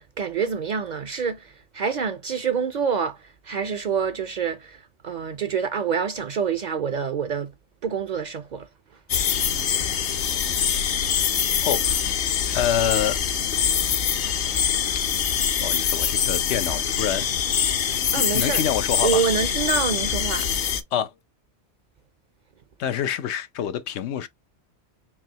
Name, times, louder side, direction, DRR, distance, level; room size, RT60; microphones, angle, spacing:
voice 1, 0.0-7.5 7.8-8.7 18.1-18.6 19.0-20.5, right 6 dB, 55° right, 0.5 m, -27 dB
sound 1, 9.1-20.8, left 8 dB, 65° left, 0.8 m, -24 dB
voice 2, 11.6-12.0 12.5-13.4 14.2-14.4 14.9-15.1 15.6-17.3 18.1-19.2 20.9-21.1 22.8-24.3, left 9 dB, 90° left, 0.9 m, -27 dB
4.7 x 3.0 x 2.8 m
omnidirectional pair, 1.1 m